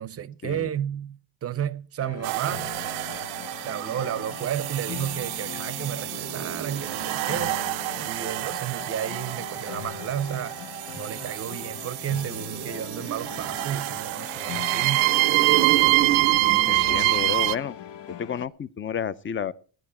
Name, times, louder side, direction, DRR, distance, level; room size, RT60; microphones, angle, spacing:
voice 1, 0.0-2.7 3.6-7.6 8.0-10.6 11.0-15.0, right 10 dB, 30° right, 0.6 m, -32 dB
sound 1, 2.0-18.5, left 11 dB, 60° left, 1.0 m, -40 dB
sound 2, 2.2-17.5, right 20 dB, 75° right, 0.6 m, -26 dB
voice 2, 16.4-17.8 18.1-19.5, left 8 dB, 25° left, 0.6 m, -31 dB
16.0 x 10.5 x 4.3 m
cardioid pair, 120°, 48 cm